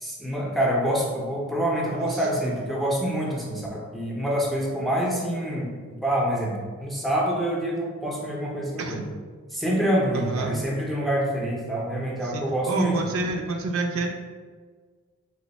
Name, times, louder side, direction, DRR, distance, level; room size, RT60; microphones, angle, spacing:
voice 1, 0.0-5.7 6.0-6.5 6.8-9.0 9.5-12.9, right 1 dB, ahead, -4 dB, 0.5 m, -26 dB
voice 2, 1.8-2.7 8.8-9.0 10.1-10.6 12.2-14.1, right 3 dB, 65° right, 3 dB, 0.4 m, -30 dB
3.0 x 2.1 x 4.0 m, 1.6 s
head